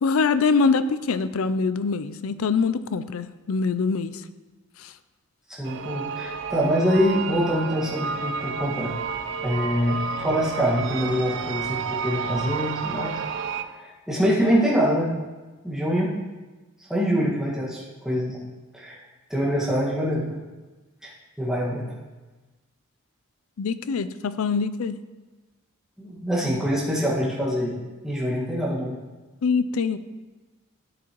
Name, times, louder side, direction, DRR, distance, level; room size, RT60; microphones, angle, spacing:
voice 1, 0.0-4.2 4.8-4.9 23.6-25.0 29.4-30.0, left 4 dB, 70° left, 13 dB, 0.4 m, -24 dB
voice 2, 5.6-8.9 9.4-13.2 13.8-15.1 15.6-16.1 16.9-18.4 18.7-19.0 19.3-20.4 21.0-21.1 21.4-21.9 26.0-29.0, equal, ahead, -6 dB, 1.7 m, -25 dB
sound 1, 5.6-13.6, right 5 dB, 55° right, 0.5 m, -31 dB
12.0 x 7.5 x 3.0 m, 1.2 s
head